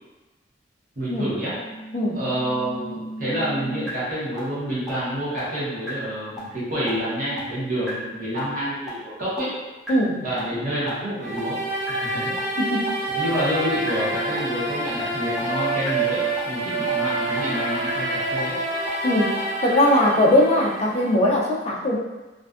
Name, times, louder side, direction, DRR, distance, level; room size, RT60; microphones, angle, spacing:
voice 1, 1.0-1.5 2.1-9.5 10.2-11.6 11.9-12.4 13.1-18.6, equal, 50° right, -9 dB, 0.8 m, -28 dB
sound 1, 1.4-3.9 4.4-4.5 4.9-5.0 5.4-5.5 5.9-6.0 6.4-6.5 6.9-7.0 7.4-7.5 7.9-8.0 8.4-8.5 8.9-9.0 9.4-9.5 9.9-10.0 10.4-10.5 10.9-11.0 11.4-11.5 11.9-12.0 12.4-12.5 12.9-13.0 13.4-13.5 13.9-14.0 14.4-14.5 14.9-15.0 15.4-15.5 15.9-16.0 16.4-16.5 16.9-17.0 17.4-17.5 17.9-18.0 18.4-18.5 18.9-19.0 19.4-19.5, equal, 5° right, 0.6 m, -35 dB
sound 2, 11.2-21.2, right 2 dB, 80° right, 0.5 m, -27 dB
voice 2, 19.6-22.0, left 1 dB, 35° left, -2 dB, 0.3 m, -20 dB
2.5 x 2.2 x 2.3 m, 1.1 s
head